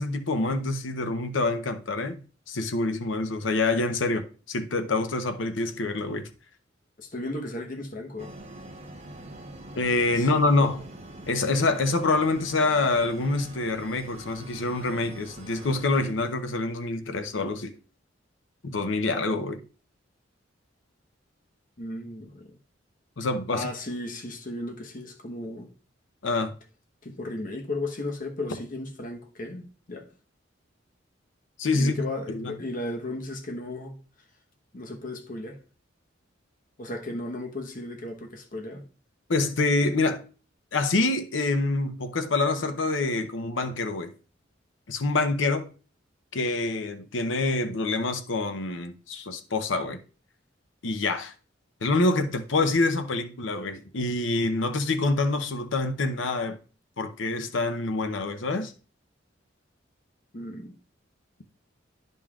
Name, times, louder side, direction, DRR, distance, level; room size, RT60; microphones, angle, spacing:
voice 1, 0.0-2.2 2.5-6.2 9.8-10.8 11.3-17.8 18.6-19.6 23.2-23.7 26.2-26.5 31.6-32.6 39.3-40.2 40.7-44.1 44.9-45.7 46.3-50.0 50.8-51.3 51.8-56.6 57.0-58.7, left 3 dB, 80° left, 0.7 m, -26 dB
voice 2, 7.0-8.3 10.2-10.7 21.8-22.6 23.5-25.7 27.0-30.1 31.7-34.0 34.7-35.6 36.8-38.8 60.3-60.8, left 2 dB, 45° left, 1.0 m, -35 dB
sound 1, 8.2-16.1, right 1 dB, 35° right, 1.0 m, -44 dB
10.0 x 5.4 x 2.4 m
head